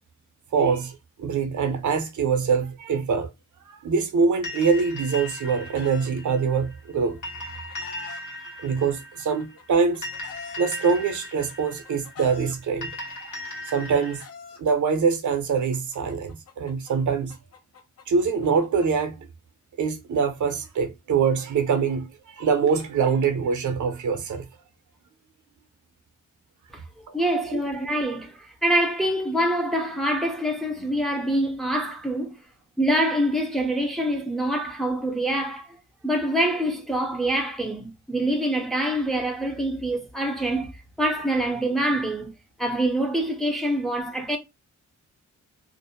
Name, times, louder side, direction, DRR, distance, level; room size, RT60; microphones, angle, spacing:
voice 1, 0.5-3.3 3.8-7.2 8.6-10.1 10.6-12.9 13.3-14.2 14.6-17.4 18.1-19.3 19.8-24.4 27.1-27.2 27.5-27.6, right 5 dB, 75° right, 0.6 m, -24 dB
sound 1, 4.4-14.2, left 1 dB, 80° left, 1.2 m, -38 dB
Chicken rooster, 5.0-6.1 7.2-8.2 9.2-10.6 11.5-12.6 13.6-14.6 15.7-19.1, left 6 dB, 55° left, 0.5 m, -44 dB
voice 2, 26.7-32.4 32.8-35.8 36.0-40.7 41.0-42.3 42.6-44.4, right 1 dB, ahead, 0.5 m, -25 dB
2.5 x 2.1 x 2.7 m
wide cardioid pair, 130°, 31 cm